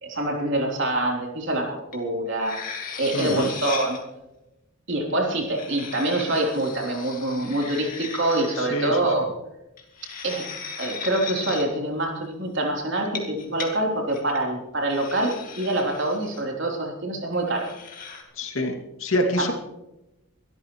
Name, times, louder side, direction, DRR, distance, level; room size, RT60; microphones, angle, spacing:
voice 1, 0.0-2.6 3.0-4.0 4.9-9.3 10.2-10.5 10.8-17.7 18.6-18.7, right 1 dB, 60° right, 0 dB, 3.6 m, -25 dB
sound 1, 1.9-2.0 2.3-4.0 5.3-8.6 9.8-11.6 13.0-13.7 14.1-14.4 14.9-16.4 17.5-18.2, left 6 dB, 40° left, 2.4 m, -37 dB
voice 2, 3.1-3.5 8.5-9.0 18.4-19.5, left 1 dB, 70° left, 3 dB, 2.6 m, -26 dB
23.0 x 13.5 x 3.2 m, 0.94 s
head